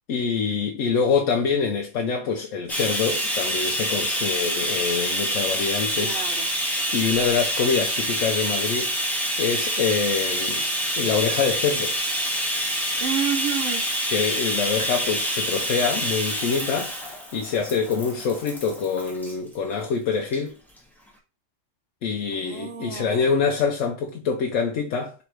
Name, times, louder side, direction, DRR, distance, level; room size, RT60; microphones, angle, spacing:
voice 1, 0.1-6.2 6.9-8.9 9.4-10.6 11.0-12.0 14.1-20.5 22.0-25.1, left 5 dB, 80° left, 1.0 m, -25 dB
Bathtub (filling or washing), 2.7-19.3 20.3-20.4 20.8-20.9, equal, ahead, 0.8 m, -27 dB
voice 2, 5.9-6.5 13.0-13.8 22.3-23.4, right 8 dB, 60° right, 0.8 m, -30 dB
3.6 x 3.1 x 4.6 m
omnidirectional pair, 1.3 m